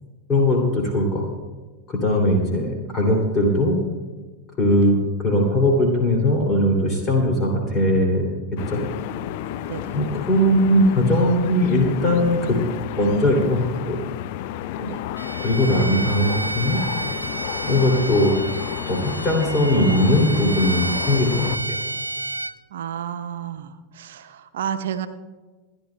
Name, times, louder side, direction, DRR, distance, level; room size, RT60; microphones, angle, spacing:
voice 1, 0.3-1.2 1.9-3.8 4.6-8.3 8.7-8.8 9.9-12.6 12.9-14.0 14.7-14.9 15.4-16.8 17.6-18.3 18.9-21.8, left 1 dB, 20° left, 0 dB, 2.8 m, -20 dB
sound 1, 8.6-21.6, left 12 dB, 50° left, 0.5 m, -31 dB
voice 2, 9.7-10.0 14.8-15.0 22.7-25.1, right 9 dB, 60° right, 10 dB, 0.8 m, -31 dB
Bowed string instrument, 15.2-22.6, right 2 dB, 80° right, 0.4 m, -30 dB
29.5 x 10.5 x 2.3 m, 1.3 s
figure-of-eight pair, 90°, 0 cm